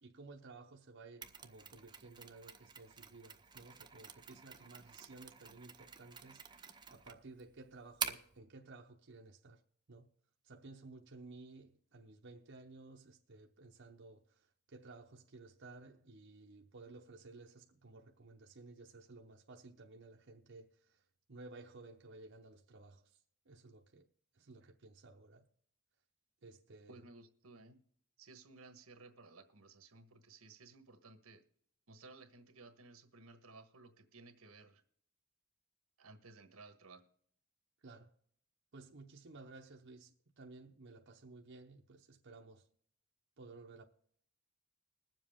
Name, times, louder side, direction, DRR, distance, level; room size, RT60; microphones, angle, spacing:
voice 1, 0.0-9.6 9.9-10.1 10.4-21.0 21.3-23.2 23.5-24.1 24.3-25.5 26.4-27.0 37.8-38.1 38.7-42.7 43.4-43.8, right 3 dB, 55° right, 0.9 m, -55 dB
Mechanisms, 1.2-8.4, right 6 dB, 20° right, 0.7 m, -47 dB
voice 2, 26.9-27.8 28.2-31.4 31.9-34.8 36.0-37.1, right 3 dB, 85° right, 1.3 m, -57 dB
21.0 x 7.5 x 3.6 m
head